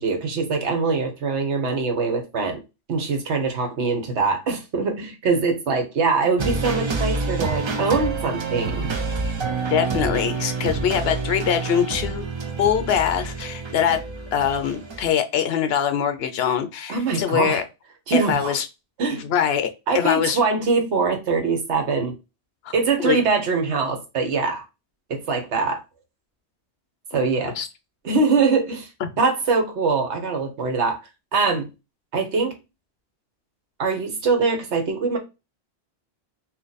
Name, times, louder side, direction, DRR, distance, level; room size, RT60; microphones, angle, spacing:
voice 1, 0.0-2.6 2.9-8.9 16.9-17.6 18.1-18.5 19.0-19.3 19.9-22.2 22.7-24.6 25.1-25.8 27.1-27.6 28.0-28.9 29.2-31.0 31.3-31.7 32.1-32.5 33.8-35.2, right 4 dB, 80° right, 1.2 m, -23 dB
sound 1, 6.4-15.1, right 4 dB, 50° right, 0.3 m, -28 dB
voice 2, 9.7-12.3 12.6-14.0 14.3-17.6 18.1-18.7 19.1-20.4 22.6-22.7 23.0-23.2 27.6-27.7 29.0-29.1, left 8 dB, 70° left, 0.8 m, -23 dB
2.9 x 2.5 x 3.9 m
omnidirectional pair, 1.1 m